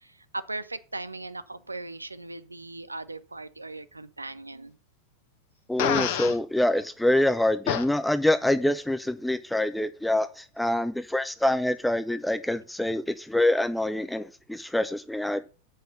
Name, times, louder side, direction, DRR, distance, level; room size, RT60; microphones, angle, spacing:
voice 1, 0.5-4.7, right 2 dB, 80° right, 0.6 m, -38 dB
voice 2, 5.7-15.4, left 1 dB, 5° left, 0.4 m, -25 dB
Fart, 5.8-6.4 7.7-7.8, left 9 dB, 50° left, 1.3 m, -26 dB
8.0 x 6.3 x 5.2 m
figure-of-eight pair, 90°, 0 cm